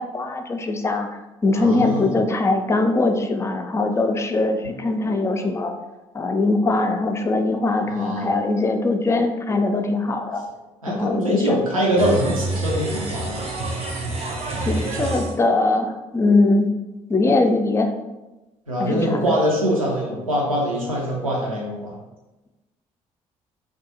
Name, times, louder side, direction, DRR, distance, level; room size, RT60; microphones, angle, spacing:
voice 1, 0.0-5.7 6.1-10.4 10.9-11.6 14.6-16.7 17.1-17.9 18.8-19.3, left 2 dB, 15° left, 6 dB, 0.3 m, -21 dB
voice 2, 1.5-2.1 7.8-8.3 10.8-13.4 18.7-22.0, equal, 85° right, -3 dB, 0.5 m, -23 dB
sound 1, 12.0-15.3, right 2 dB, 35° right, 0.6 m, -27 dB
2.6 x 2.3 x 2.7 m, 1.0 s
figure-of-eight pair, 45°, 17 cm